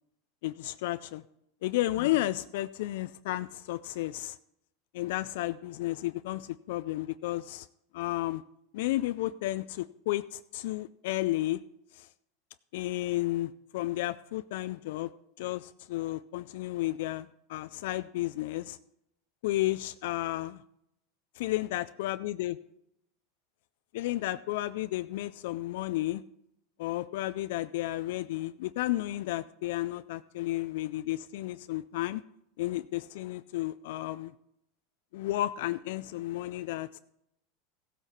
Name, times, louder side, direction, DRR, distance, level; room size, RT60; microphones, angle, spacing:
voice 1, 0.4-1.2 1.6-4.4 4.9-7.7 7.9-8.4 8.7-11.6 11.9-12.1 12.7-15.1 15.4-18.8 19.4-20.6 21.4-22.6 23.9-26.2 26.8-32.2 32.6-34.3 35.1-37.0, left 16 dB, 75° left, 13 dB, 0.3 m, -32 dB
15.0 x 8.1 x 4.3 m, 0.80 s
supercardioid pair, 120°, 0 cm